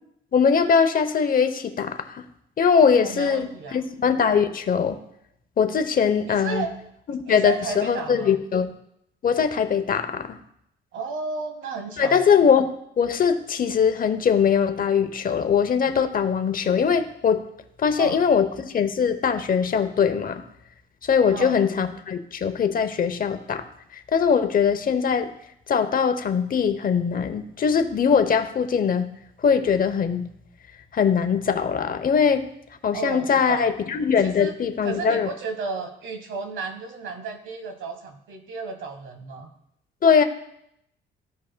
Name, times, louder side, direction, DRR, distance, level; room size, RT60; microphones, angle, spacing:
voice 1, 0.3-2.2 2.6-5.0 5.6-6.7 7.1-8.7 9.2-10.4 12.0-17.4 17.8-20.4 21.0-23.7 23.9-25.3 25.7-29.1 29.4-30.3 30.9-32.5 32.8-35.3 40.0-40.2, left 6 dB, 45° left, 9 dB, 0.7 m, -21 dB
voice 2, 3.0-3.8 6.3-6.7 7.3-8.3 10.9-12.3 18.0-18.2 21.3-21.5 32.9-33.7 34.2-34.5 34.8-39.5, right 4 dB, 75° right, 6 dB, 1.2 m, -33 dB
14.5 x 5.2 x 2.2 m, 0.75 s
cardioid pair, 90°, 20 cm